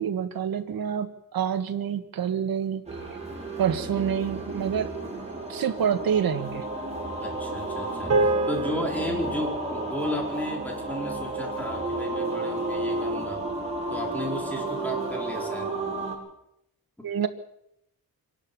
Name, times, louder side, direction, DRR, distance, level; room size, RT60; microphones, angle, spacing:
voice 1, 0.0-2.8 3.6-4.9 5.5-6.7 17.0-17.3, right 8 dB, 80° right, 8 dB, 1.8 m, -27 dB
sound 1, 2.9-16.2, right 2 dB, 20° right, 5.6 m, -32 dB
voice 2, 7.2-8.2 8.5-13.4 13.9-15.7, left 1 dB, 5° left, 0 dB, 4.7 m, -33 dB
sound 2, 8.1-12.6, right 2 dB, 40° right, 5.2 m, -30 dB
26.0 x 11.5 x 8.7 m, 0.78 s
wide cardioid pair, 150°, 35 cm